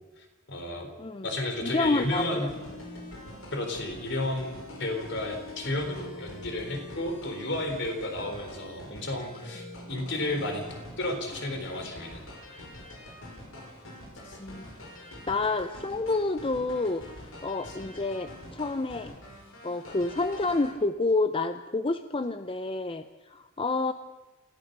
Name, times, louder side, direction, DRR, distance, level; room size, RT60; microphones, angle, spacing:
voice 1, 0.5-0.9 1.2-2.5 3.5-10.6 11.0-12.2 12.5-12.6 14.3-14.4 17.7-17.8, left 1 dB, 60° left, 5 dB, 4.0 m, -32 dB
sound 1, 1.6-20.7, left 1 dB, 85° left, 5.3 m, -45 dB
voice 2, 1.6-2.5 14.4-14.6 15.3-17.0 17.4-19.1 19.6-23.9, left 3 dB, 25° left, 10 dB, 0.6 m, -29 dB
28.0 x 15.0 x 6.7 m, 1.2 s
head